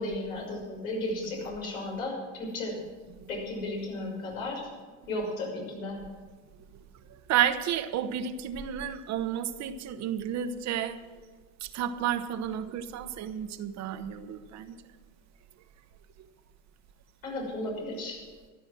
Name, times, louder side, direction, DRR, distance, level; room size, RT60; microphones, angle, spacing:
voice 1, 0.0-2.8 3.3-4.7 5.1-6.0 17.2-18.2, left 2 dB, 85° left, -1 dB, 6.2 m, -34 dB
voice 2, 7.3-11.0 11.6-14.8, right 10 dB, 40° right, 10 dB, 1.1 m, -31 dB
15.0 x 11.5 x 6.3 m, 1.4 s
hypercardioid pair, 100°, 41 cm